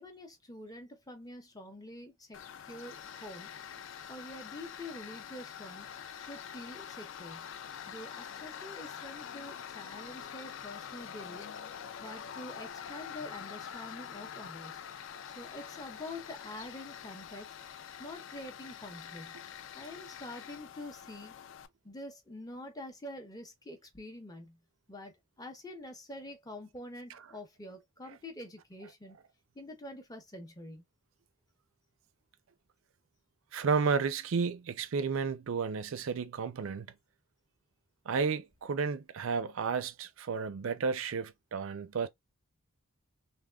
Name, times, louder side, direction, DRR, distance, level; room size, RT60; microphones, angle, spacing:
voice 1, 0.0-2.4 2.7-3.5 4.1-5.9 6.3-7.5 7.9-11.5 12.0-14.8 15.4-17.5 18.0-19.4 19.7-21.3 21.8-24.6 24.9-29.2 29.5-30.8, left 1 dB, 15° left, 0.6 m, -46 dB
Tools, 2.3-21.7, left 8 dB, 60° left, 0.3 m, -45 dB
voice 2, 33.5-36.9 38.1-42.1, right 5 dB, 65° right, 0.4 m, -32 dB
3.4 x 2.1 x 2.2 m
head